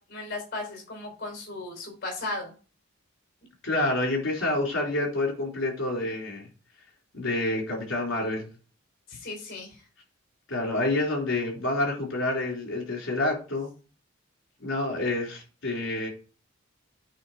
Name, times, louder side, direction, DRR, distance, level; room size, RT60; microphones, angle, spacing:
voice 1, 0.1-2.5 9.1-9.8, left 2 dB, 50° left, 2 dB, 3.3 m, -36 dB
voice 2, 3.6-6.5 7.1-8.5 10.5-13.7 14.6-16.1, left 2 dB, 70° left, -1 dB, 3.6 m, -28 dB
8.8 x 3.3 x 4.4 m, 0.35 s
head